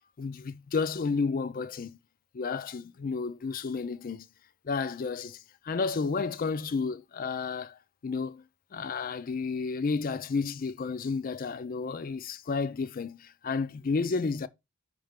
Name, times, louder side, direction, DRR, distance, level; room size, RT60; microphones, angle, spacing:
voice 1, 0.2-2.0 2.3-4.3 4.6-8.4 8.7-14.5, left 4 dB, 40° left, 0.4 m, -31 dB
5.7 x 3.3 x 5.1 m
head